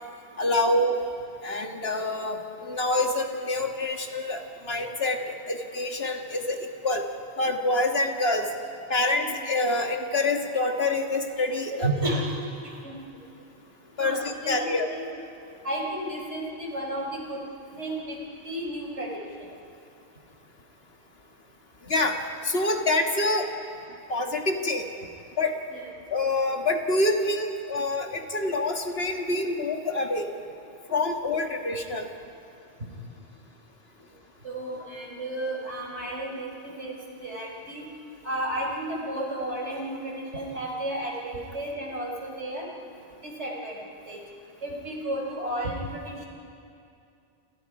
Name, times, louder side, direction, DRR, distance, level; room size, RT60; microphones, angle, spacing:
voice 1, 0.4-1.0 1.4-6.6 6.8-7.1 7.4-8.5 8.9-11.9 14.0-14.9 21.9-22.2 22.4-23.5 24.1-24.9 25.4-25.6 26.1-30.3 30.9-32.1, left 2 dB, 65° left, 3 dB, 2.0 m, -26 dB
voice 2, 11.7-12.4 12.6-13.0 14.0-15.2 15.6-17.4 17.8-18.2 18.4-19.2 34.4-37.8 38.2-42.7 43.2-43.8 44.1-44.2 44.6-46.3, right 1 dB, 85° right, -1 dB, 4.6 m, -32 dB
29.0 x 27.5 x 5.0 m, 2.5 s
omnidirectional pair, 1.1 m